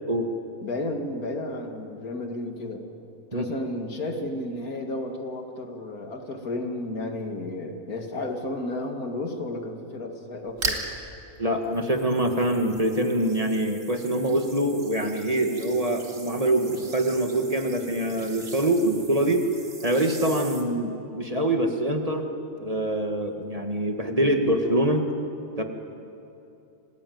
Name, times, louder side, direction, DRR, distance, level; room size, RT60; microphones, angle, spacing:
voice 1, 0.6-2.8 3.3-10.8, left 2 dB, 80° left, 4 dB, 2.7 m, -32 dB
sound 1, 10.5-11.0 11.6-20.6, right 3 dB, 65° right, 2.7 m, -39 dB
voice 2, 11.4-19.4 19.8-22.2 22.6-25.0 25.6-25.7, right 1 dB, 25° right, 4 dB, 1.8 m, -24 dB
27.0 x 19.0 x 9.4 m, 2.8 s
omnidirectional pair, 1.5 m